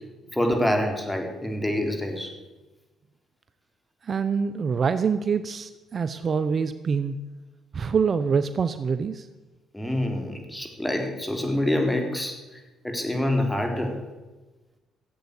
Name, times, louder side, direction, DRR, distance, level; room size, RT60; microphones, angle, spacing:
voice 1, 0.3-2.3 9.7-12.4 12.8-13.9, left 1 dB, 10° left, 3 dB, 3.9 m, -26 dB
voice 2, 4.0-7.2 7.7-9.3, right 6 dB, 45° right, 12 dB, 0.8 m, -25 dB
15.5 x 8.4 x 8.3 m, 1.2 s
supercardioid pair, 65°, 0 cm